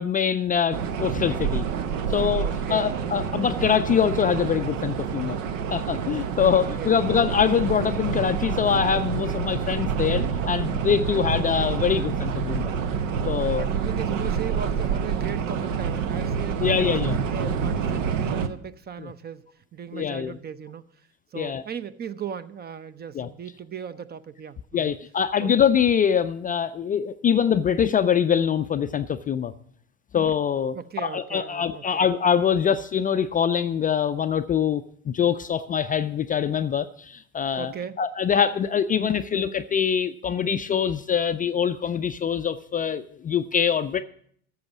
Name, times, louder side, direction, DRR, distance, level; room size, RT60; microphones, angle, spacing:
voice 1, 0.0-1.7 2.1-5.4 5.7-12.7 13.3-13.6 16.6-17.2 19.0-19.1 19.9-20.4 21.4-21.6 23.2-23.3 24.7-29.5 30.1-37.7 38.0-44.0, left 7 dB, 20° left, 10 dB, 0.4 m, -24 dB
sound 1, 0.7-18.5, right 6 dB, 75° right, 0.9 m, -27 dB
voice 2, 2.4-2.9 6.5-6.9 10.9-11.3 13.5-19.4 19.7-20.8 21.3-25.0 25.4-25.5 30.7-32.0 37.6-38.0, right 8 dB, 25° right, 16 dB, 0.5 m, -37 dB
13.5 x 7.0 x 6.0 m, 0.63 s
hypercardioid pair, 70°, 39 cm